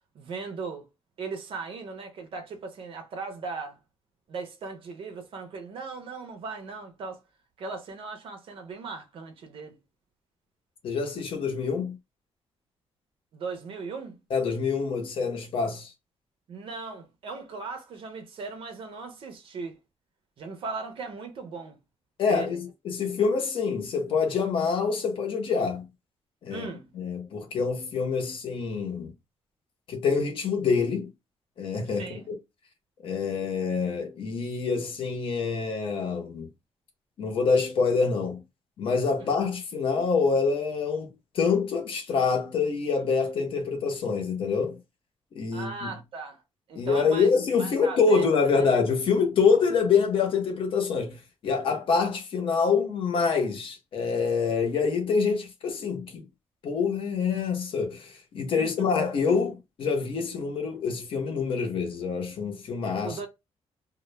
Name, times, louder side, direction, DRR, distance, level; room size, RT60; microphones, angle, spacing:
voice 1, 0.1-0.9 1.2-3.8 4.3-7.2 7.6-9.8 13.3-14.2 16.5-19.8 20.4-21.8 22.3-22.6 26.5-26.9 31.9-32.3 39.2-39.3 45.5-46.4 46.7-47.3 47.6-48.3 48.6-48.7 58.6-58.9 63.0-63.3, right 4 dB, 60° right, 0.5 m, -38 dB
voice 2, 10.8-12.0 14.3-15.9 22.2-25.9 26.4-26.7 26.9-29.1 29.9-31.1 31.6-32.4 33.0-36.5 37.2-38.4 38.8-44.8 45.3-45.9 46.8-56.2 56.6-63.2, left 5 dB, 55° left, 0.7 m, -26 dB
2.1 x 2.1 x 3.1 m
wide cardioid pair, 165°, 11 cm